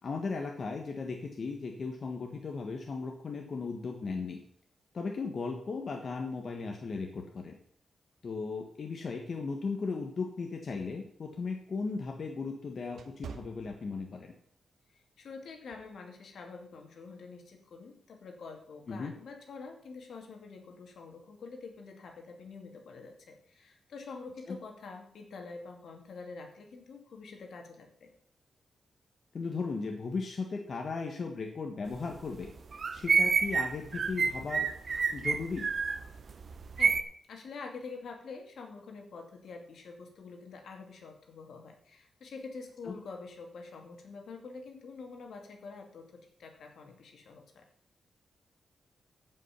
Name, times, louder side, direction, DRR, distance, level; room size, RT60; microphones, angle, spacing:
voice 1, 0.0-4.4 4.9-7.6 8.2-14.3 18.9-19.1 24.5-24.6 29.3-32.5 32.9-34.7 35.1-35.7 42.8-43.0, left 4 dB, 50° left, 2 dB, 1.4 m, -36 dB
sound 1, 10.8-14.4 14.9-15.1 15.7-16.0, right 6 dB, 75° right, 1.0 m, -49 dB
voice 2, 14.9-28.1 36.8-37.0 37.3-47.7, left 4 dB, 75° left, 3 dB, 2.4 m, -46 dB
sound 2, 31.9-32.0 32.3-37.0, right 5 dB, 50° right, 0.7 m, -29 dB
14.5 x 5.7 x 5.9 m, 0.65 s
wide cardioid pair, 120°, 0 cm